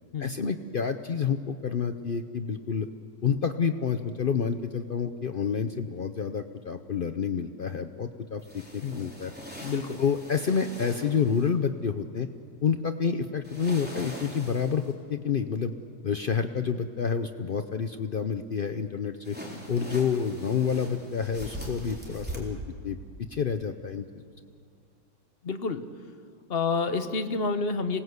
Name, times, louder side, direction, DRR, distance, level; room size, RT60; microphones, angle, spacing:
voice 1, 0.2-2.9 3.2-9.3 10.0-12.3 12.6-15.7 16.0-19.4 19.7-23.0 23.3-24.1, left 6 dB, 70° left, 8 dB, 0.5 m, -29 dB
sound 1, 8.4-11.5 13.4-14.9 19.2-22.4, equal, 5° right, 3.8 m, -41 dB
voice 2, 9.6-10.0 25.4-25.9 26.5-28.0, left 4 dB, 40° left, 9 dB, 0.9 m, -29 dB
27.0 x 18.5 x 8.0 m, 2.3 s
omnidirectional pair, 1.9 m